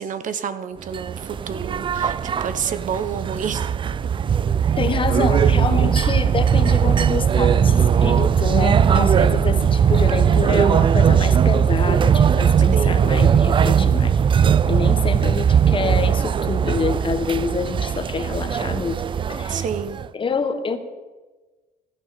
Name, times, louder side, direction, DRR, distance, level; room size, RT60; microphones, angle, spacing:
voice 1, 0.0-3.9 12.7-13.1 19.5-20.0, right 7 dB, 50° right, 12 dB, 0.9 m, -29 dB
sound 1, 0.9-20.1, right 8 dB, 30° right, 0.4 m, -19 dB
voice 2, 4.8-19.0 19.3-19.7 20.1-20.8, left 5 dB, 30° left, 8 dB, 1.4 m, -27 dB
15.5 x 9.3 x 6.7 m, 1.3 s
cardioid pair, 110°, 17 cm